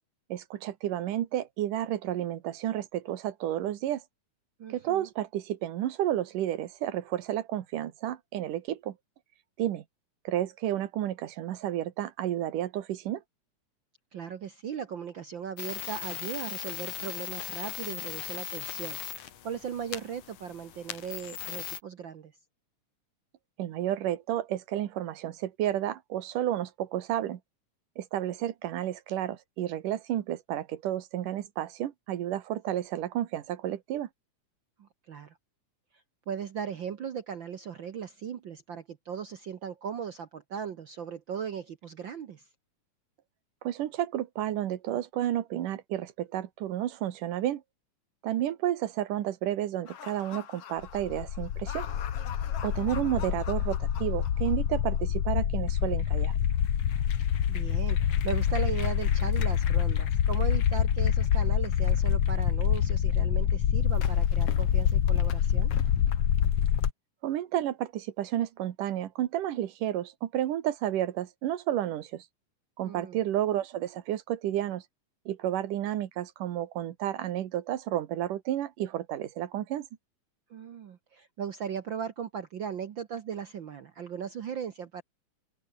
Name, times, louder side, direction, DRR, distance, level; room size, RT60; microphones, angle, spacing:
voice 1, 0.3-4.0 4.7-8.9 9.6-9.8 10.2-13.2 23.6-27.4 28.0-34.1 43.6-47.6 48.2-51.9 52.6-56.3 67.2-72.2 72.8-74.8 75.3-79.9, right 12 dB, 85° right, 2.9 m, -31 dB
voice 2, 4.6-5.1 14.1-22.3 34.8-35.4 36.3-42.4 52.9-53.1 57.5-65.7 72.8-73.2 80.5-85.0, right 7 dB, 65° right, 1.2 m, -38 dB
sound 1, 15.6-21.8, left 11 dB, 75° left, 3.4 m, -39 dB
sound 2, 49.9-66.9, left 9 dB, 55° left, 2.3 m, -26 dB
omnidirectional pair, 3.7 m